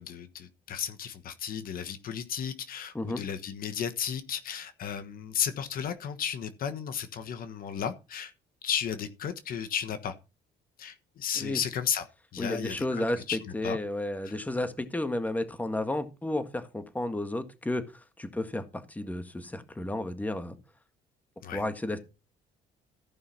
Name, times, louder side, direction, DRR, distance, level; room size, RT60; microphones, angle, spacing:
voice 1, 0.0-8.3 8.6-10.1 10.8-12.1 12.3-13.8 14.2-14.4 21.4-21.6, left 8 dB, 60° left, 1.3 m, -34 dB
voice 2, 12.4-13.2 13.5-17.8 18.2-20.6 21.5-22.0, left 1 dB, 10° left, 1.7 m, -32 dB
14.5 x 5.7 x 5.8 m
cardioid pair, 110°, 17 cm